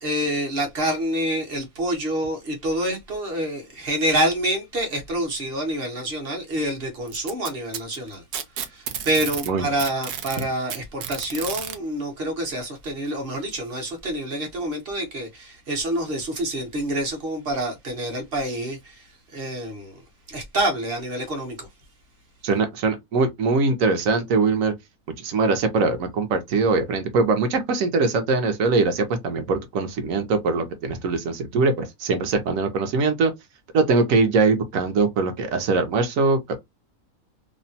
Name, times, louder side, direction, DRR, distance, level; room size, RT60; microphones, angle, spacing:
voice 1, 0.0-8.2 8.6-19.0 19.3-20.0 20.3-21.7, right 1 dB, 45° right, 0.9 m, -27 dB
Packing tape duct tape, 7.1-9.5 9.8-11.8 12.9-13.0 13.5-13.6 14.5-14.6, right 8 dB, 90° right, 0.5 m, -32 dB
voice 2, 22.4-24.7 25.2-33.3 33.7-36.6, right 3 dB, 70° right, 1.0 m, -22 dB
2.8 x 2.1 x 2.6 m
omnidirectional pair, 1.6 m